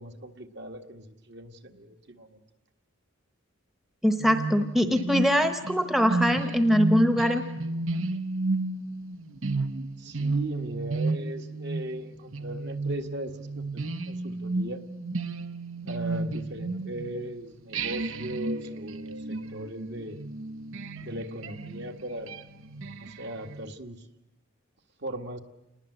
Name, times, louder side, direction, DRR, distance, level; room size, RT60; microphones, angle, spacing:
voice 1, 0.0-2.4 10.0-14.8 15.8-20.2 21.0-22.4 23.0-24.1 25.0-25.4, right 1 dB, 50° right, 5 dB, 1.8 m, -38 dB
voice 2, 4.0-7.4, equal, ahead, 7 dB, 1.0 m, -23 dB
sound 1, 4.2-17.3 17.7-23.6, right 2 dB, 65° right, 0.9 m, -32 dB
28.5 x 20.0 x 7.9 m, 0.96 s
head